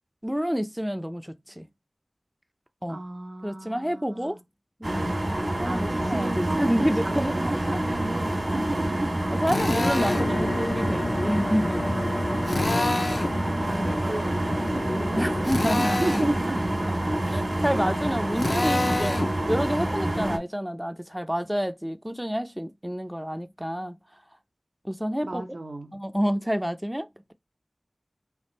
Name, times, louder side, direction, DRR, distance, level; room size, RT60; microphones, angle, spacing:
voice 1, 0.2-1.7 2.8-3.0 3.4-4.4 4.8-5.1 5.6-7.5 9.3-11.9 15.2-16.2 17.3-19.2 19.5-24.0 24.8-25.4 25.9-27.3, equal, 5° right, 0.4 m, -28 dB
voice 2, 2.9-4.4 5.6-11.0 12.7-16.8 18.5-18.8 25.2-26.0, right 2 dB, 80° right, 0.7 m, -35 dB
sound 1, 4.8-20.4, right 1 dB, 55° right, 1.4 m, -27 dB
Drill, 9.5-10.3 12.5-13.4 15.4-16.3 18.4-19.3, left 2 dB, 70° left, 0.4 m, -27 dB
sound 2, 10.0-15.5, left 2 dB, 90° left, 0.9 m, -33 dB
3.4 x 2.4 x 3.9 m
wide cardioid pair, 50°, 0 cm